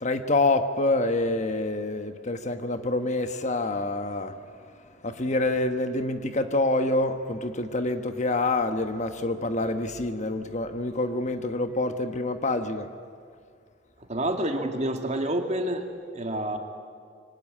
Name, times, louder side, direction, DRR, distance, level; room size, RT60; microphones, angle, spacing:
voice 1, 0.0-4.3 5.0-12.9, left 2 dB, 40° left, 8 dB, 1.2 m, -26 dB
voice 2, 14.1-15.8 16.1-16.6, right 1 dB, 35° right, 4 dB, 2.4 m, -28 dB
25.0 x 24.0 x 9.9 m, 2.2 s
head